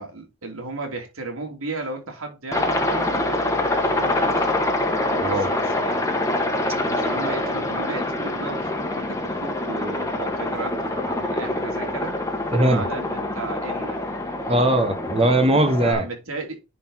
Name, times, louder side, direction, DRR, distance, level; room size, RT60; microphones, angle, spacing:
voice 1, 0.0-4.5 5.1-6.0 6.4-6.5 6.9-12.1 12.5-14.0 15.8-16.6, right 2 dB, 75° right, 2.9 m, -34 dB
Aircraft, 2.5-15.9, left 1 dB, 15° left, 1.4 m, -25 dB
voice 2, 12.5-12.9 14.5-16.0, right 1 dB, 30° right, 1.1 m, -19 dB
10.0 x 4.4 x 4.1 m
head